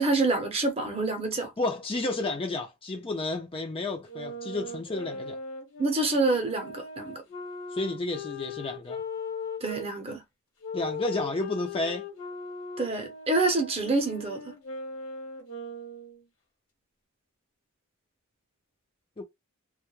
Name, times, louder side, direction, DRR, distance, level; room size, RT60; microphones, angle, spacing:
voice 1, 0.0-1.5 5.8-7.2 9.6-10.2 12.8-14.5, right 3 dB, 25° right, 0.7 m, -27 dB
voice 2, 1.6-5.4 7.7-9.0 10.7-12.0 19.2-19.3, left 2 dB, 25° left, 0.5 m, -31 dB
sound 1, 4.1-9.9 10.6-16.2, left 3 dB, 60° left, 1.1 m, -39 dB
2.2 x 2.1 x 3.1 m
head